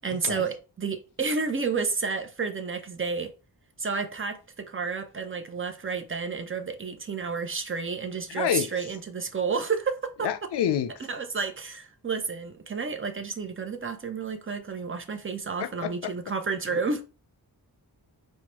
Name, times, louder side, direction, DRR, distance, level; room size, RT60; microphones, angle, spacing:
voice 1, 0.0-3.3 3.8-10.3 11.1-17.0, right 5 dB, 30° right, 0.5 m, -31 dB
voice 2, 8.3-8.7 10.2-10.9 15.6-16.1, left 9 dB, 75° left, 0.5 m, -27 dB
4.5 x 2.2 x 2.9 m
wide cardioid pair, 100°, 41 cm